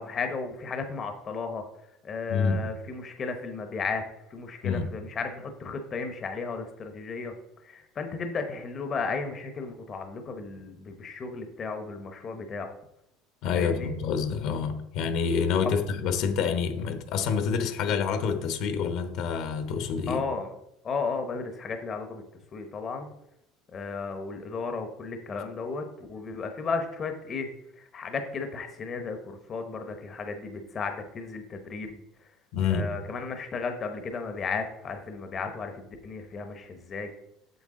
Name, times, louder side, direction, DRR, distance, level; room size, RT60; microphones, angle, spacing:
voice 1, 0.0-1.7 2.0-4.0 4.3-7.3 7.6-12.7 13.5-13.9 15.6-15.7 20.1-20.5 20.8-22.2 22.5-23.1 23.7-27.5 27.8-32.0 32.7-37.1, left 4 dB, 30° left, 0.8 m, -34 dB
voice 2, 2.3-2.6 4.6-4.9 13.4-20.2 32.5-32.9, left 6 dB, 55° left, 1.0 m, -27 dB
8.0 x 7.1 x 3.7 m
cardioid pair, 150°, 0 cm